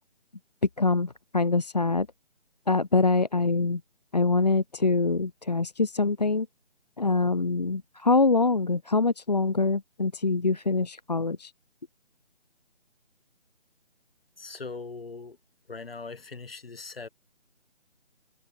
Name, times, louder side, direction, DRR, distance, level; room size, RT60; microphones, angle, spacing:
voice 1, 0.8-2.1 2.7-3.8 4.1-6.5 7.0-11.5, left 3 dB, 35° left, 0.7 m, -24 dB
voice 2, 14.4-15.4 15.7-17.1, left 4 dB, 50° left, 7.6 m, -40 dB
figure-of-eight pair, 155°, 36 cm